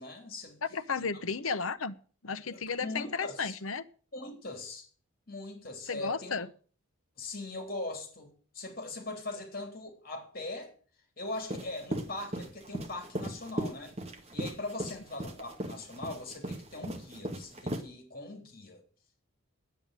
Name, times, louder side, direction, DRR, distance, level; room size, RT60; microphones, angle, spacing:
voice 1, 0.0-0.6 1.0-1.1 2.5-3.6 4.1-4.9 5.3-6.4 7.2-10.7 11.2-13.9 14.3-18.8, left 2 dB, 45° left, 3.6 m, -41 dB
voice 2, 0.7-1.9 2.2-3.8 5.9-6.5, left 5 dB, 75° left, 1.0 m, -33 dB
sound 1, 11.4-17.8, right 1 dB, 30° right, 1.9 m, -37 dB
10.0 x 9.0 x 9.0 m
head